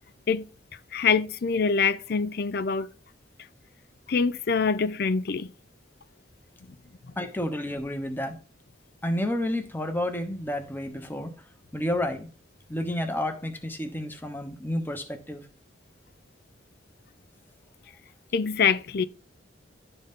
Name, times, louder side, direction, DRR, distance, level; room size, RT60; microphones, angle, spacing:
voice 1, 0.9-2.9 4.1-5.5 18.3-19.0, left 5 dB, 55° left, 0.5 m, -24 dB
voice 2, 7.2-8.4 9.0-11.3 11.7-12.3 12.7-15.5, left 1 dB, 10° left, 1.0 m, -30 dB
11.5 x 4.0 x 3.6 m
head